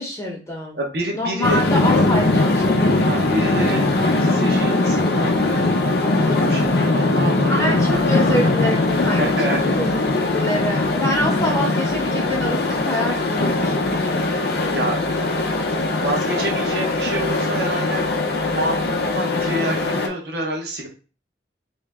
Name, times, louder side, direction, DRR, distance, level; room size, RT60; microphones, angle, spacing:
voice 1, 0.0-0.8 1.1-3.1 7.5-14.5, left 1 dB, 15° left, -2 dB, 1.0 m, -26 dB
voice 2, 0.7-1.6 3.0-8.5 9.2-9.6 14.7-15.0 15.8-18.0 18.5-20.9, right 1 dB, 65° right, 0 dB, 1.0 m, -28 dB
sound 1, 1.4-20.1, left 2 dB, 60° left, 0.5 m, -20 dB
3.2 x 2.8 x 3.5 m, 0.36 s
head